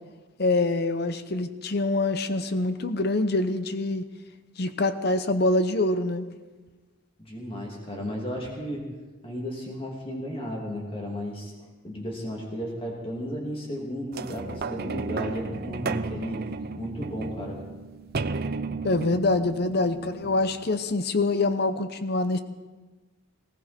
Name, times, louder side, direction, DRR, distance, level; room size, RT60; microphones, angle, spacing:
voice 1, 0.4-4.1 4.6-6.3 18.8-22.4, left 2 dB, 50° left, 10 dB, 0.8 m, -25 dB
voice 2, 7.2-8.9 9.2-16.4 16.8-17.6, equal, 25° left, -2 dB, 2.8 m, -34 dB
sound 1, 14.1-20.9 21.5-21.6, right 4 dB, 45° right, 0.5 m, -34 dB
19.5 x 16.5 x 4.4 m, 1.3 s
head